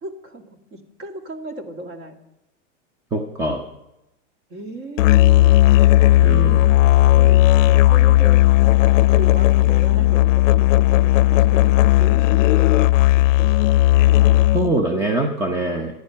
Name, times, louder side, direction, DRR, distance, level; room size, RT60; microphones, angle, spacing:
voice 1, 0.0-2.1 4.5-5.6 7.1-13.8, right 1 dB, 25° right, 5 dB, 2.0 m, -36 dB
voice 2, 3.1-3.6 6.2-6.7 14.5-16.0, right 2 dB, 10° right, 4 dB, 0.7 m, -23 dB
Musical instrument, 5.0-14.8, left 15 dB, 85° left, 0.5 m, -14 dB
26.5 x 9.6 x 5.6 m, 0.91 s
supercardioid pair, 160°, 37 cm